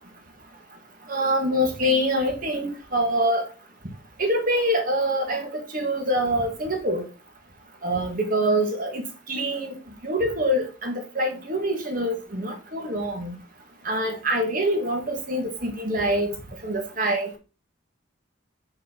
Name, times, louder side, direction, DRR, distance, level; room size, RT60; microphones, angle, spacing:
voice 1, 1.1-3.4 4.2-7.0 7.8-9.8 10.0-13.3 13.8-16.3 16.6-17.3, equal, 45° right, 3 dB, 1.6 m, -25 dB
6.3 x 5.3 x 3.8 m, 0.32 s
head